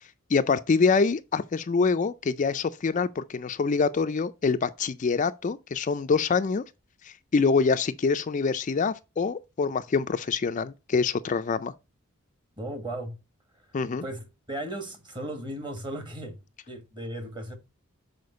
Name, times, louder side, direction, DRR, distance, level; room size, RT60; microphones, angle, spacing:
voice 1, 0.3-6.6 7.0-11.7 13.7-14.0, left 4 dB, 35° left, 0.3 m, -25 dB
voice 2, 12.6-13.1 14.0-16.4 16.7-17.5, right 1 dB, 20° right, 1.4 m, -36 dB
6.7 x 4.4 x 5.1 m
head